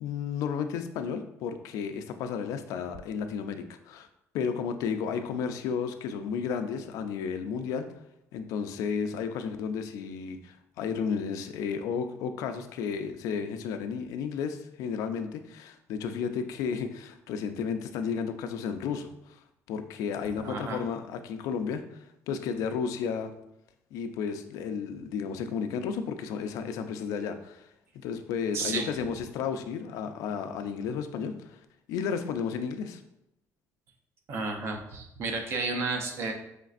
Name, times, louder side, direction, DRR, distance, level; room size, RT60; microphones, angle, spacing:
voice 1, 0.0-4.1 4.3-7.9 8.3-19.4 19.7-23.3 23.9-27.7 27.9-31.6 31.9-33.0, left 6 dB, 80° left, 8 dB, 0.4 m, -33 dB
voice 2, 20.4-20.9 28.5-28.9 34.3-36.3, right 3 dB, 50° right, 3 dB, 0.6 m, -32 dB
5.1 x 3.2 x 2.4 m, 0.82 s
cardioid pair, 170°, 6 cm